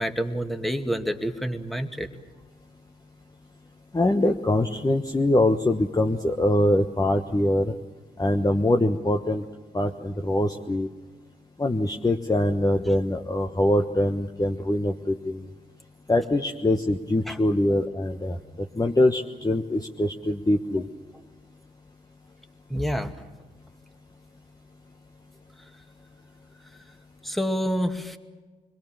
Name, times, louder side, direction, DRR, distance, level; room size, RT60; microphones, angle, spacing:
voice 1, 0.0-2.1 17.3-17.4 22.7-23.1 27.2-28.2, equal, ahead, 6 dB, 2.2 m, -28 dB
voice 2, 3.9-7.7 8.2-9.4 9.7-10.9 11.6-15.5 16.1-18.4 18.7-20.9, left 1 dB, 20° left, 3 dB, 1.3 m, -23 dB
26.0 x 21.5 x 7.0 m, 1.3 s
hypercardioid pair, 40°, 20 cm